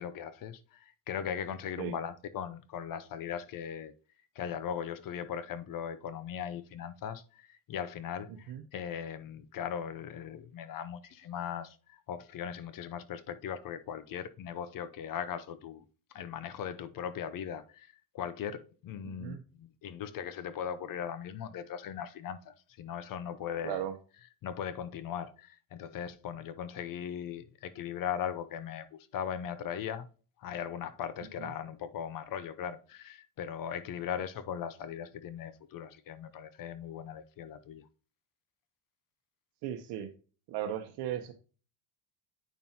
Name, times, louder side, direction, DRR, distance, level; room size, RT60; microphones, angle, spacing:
voice 1, 0.0-3.9 4.4-15.8 16.1-23.8 24.4-30.1 30.4-37.9, left 8 dB, 50° left, 0.8 m, -39 dB
voice 2, 8.3-8.6 19.0-19.4 23.6-23.9 31.4-31.5 39.6-40.1 40.5-41.3, right 11 dB, 75° right, 0.9 m, -37 dB
9.2 x 5.4 x 2.9 m
cardioid pair, 115°, 42 cm